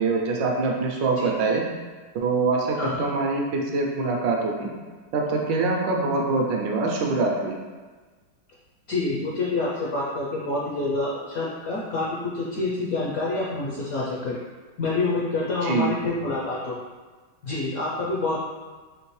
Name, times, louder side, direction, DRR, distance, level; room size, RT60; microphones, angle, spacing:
voice 1, 0.0-1.6 2.1-4.7 5.1-7.6 15.6-15.9, right 3 dB, 75° right, 0 dB, 1.2 m, -24 dB
voice 2, 8.9-14.4 14.8-16.8 17.4-18.4, left 2 dB, 65° left, -5 dB, 0.9 m, -27 dB
4.3 x 3.1 x 3.1 m, 1.4 s
omnidirectional pair, 2.1 m